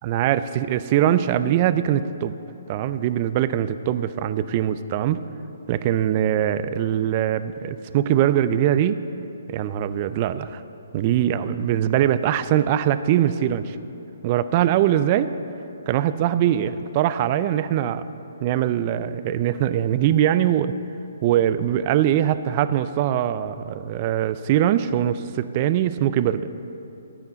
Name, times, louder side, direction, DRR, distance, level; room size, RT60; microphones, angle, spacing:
voice 1, 0.0-2.3 2.7-5.2 5.7-9.0 9.5-10.6 10.9-13.8 14.2-15.3 15.9-18.0 18.4-20.7 21.2-26.5, right 11 dB, 35° right, 13 dB, 0.4 m, -22 dB
14.5 x 10.5 x 4.0 m, 2.9 s
hypercardioid pair, 140°, 0 cm